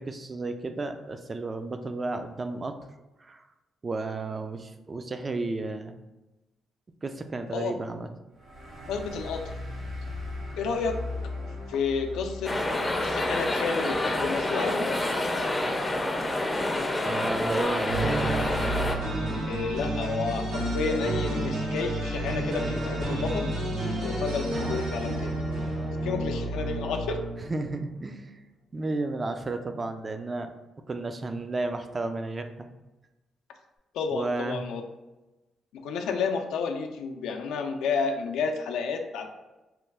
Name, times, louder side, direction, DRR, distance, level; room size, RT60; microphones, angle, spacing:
voice 1, 0.0-2.8 3.2-3.4 3.8-5.9 7.0-8.1 16.7-16.8 17.0-18.1 27.5-28.4 28.7-30.5 30.9-32.7 34.1-34.6, right 3 dB, 35° right, 7 dB, 0.4 m, -33 dB
sound 1, 8.3-15.4, left 2 dB, 65° right, 1.5 m, -39 dB
voice 2, 8.9-9.5 10.6-11.3 11.7-12.7 13.0-15.0 19.4-23.6 24.0-25.3 26.0-27.3 33.9-34.8 35.7-39.3, left 5 dB, 80° left, 4 dB, 0.4 m, -31 dB
sound 2, 12.4-19.0, left 1 dB, 20° left, 0.5 m, -28 dB
sound 3, 17.9-27.7, right 1 dB, 90° right, 1.0 m, -30 dB
3.0 x 2.3 x 3.4 m, 1.1 s
supercardioid pair, 60°, 0 cm